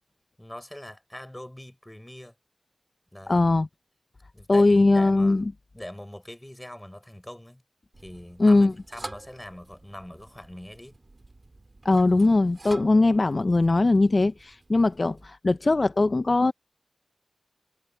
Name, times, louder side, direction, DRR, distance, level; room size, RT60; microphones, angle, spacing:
voice 1, 0.4-2.3 3.1-3.5 4.3-5.4 5.7-7.6 8.0-11.0, left 1 dB, 15° left, 4.7 m, -42 dB
voice 2, 3.3-3.7 4.5-5.5 8.4-8.7 11.9-16.5, left 2 dB, 50° left, 0.4 m, -20 dB
sound 1, 7.9-15.3, right 2 dB, 45° right, 3.5 m, -47 dB
wide cardioid pair, 60°, 0 cm